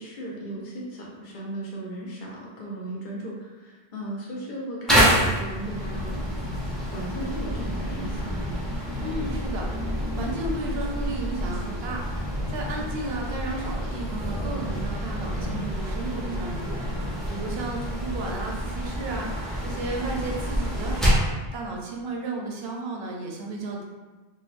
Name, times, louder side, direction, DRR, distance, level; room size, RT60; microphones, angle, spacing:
voice 1, 0.0-6.2 6.9-8.5 16.1-16.5 19.5-19.7, right 1 dB, 55° left, -4 dB, 0.9 m, -36 dB
sound 1, 4.9-21.4, equal, ahead, 0.5 m, -28 dB
voice 2, 9.0-12.0 12.5-19.3 19.6-23.8, right 2 dB, 80° right, 0 dB, 0.9 m, -34 dB
3.9 x 2.3 x 2.5 m, 1.2 s
omnidirectional pair, 1.0 m